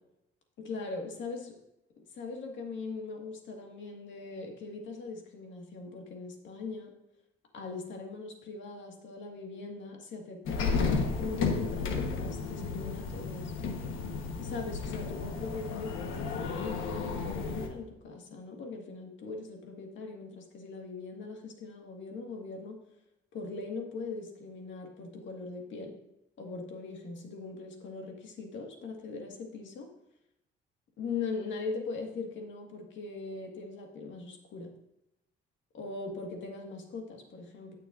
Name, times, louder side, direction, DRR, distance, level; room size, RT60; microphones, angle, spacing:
voice 1, 0.6-1.5 2.1-6.9 7.5-10.7 11.2-13.5 14.4-22.8 23.3-25.9 26.4-29.9 31.0-34.7 35.7-37.8, left 4 dB, 70° left, 2 dB, 1.8 m, -40 dB
sound 1, 10.5-17.7, left 4 dB, 85° left, 1.2 m, -33 dB
15.5 x 6.6 x 2.6 m, 0.87 s
cardioid pair, 90°, 20 cm